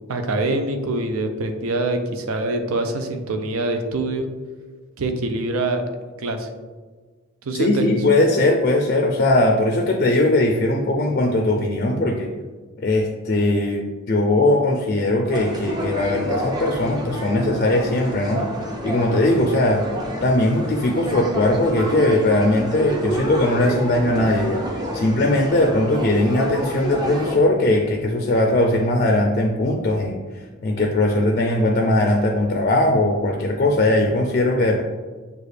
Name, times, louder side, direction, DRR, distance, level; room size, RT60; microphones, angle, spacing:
voice 1, 0.1-4.3 5.0-5.8 6.2-6.5 7.4-8.0, right 2 dB, 85° right, 6 dB, 0.5 m, -24 dB
voice 2, 7.6-12.3 12.8-18.4 18.8-19.8 20.2-24.6 24.9-30.2 30.6-34.8, left 1 dB, 40° left, 2 dB, 0.4 m, -19 dB
sound 1, 15.3-27.4, equal, 20° right, 0.5 m, -29 dB
6.6 x 2.4 x 3.2 m, 1.4 s
head